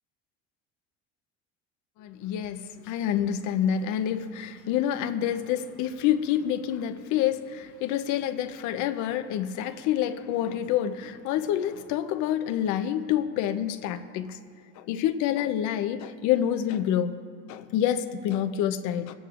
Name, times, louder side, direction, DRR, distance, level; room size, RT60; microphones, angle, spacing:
voice 1, 2.0-14.4 14.8-17.2 17.5-19.1, left 10 dB, 70° left, 0.7 m, -27 dB
24.0 x 9.9 x 2.5 m
supercardioid pair, 105°, 31 cm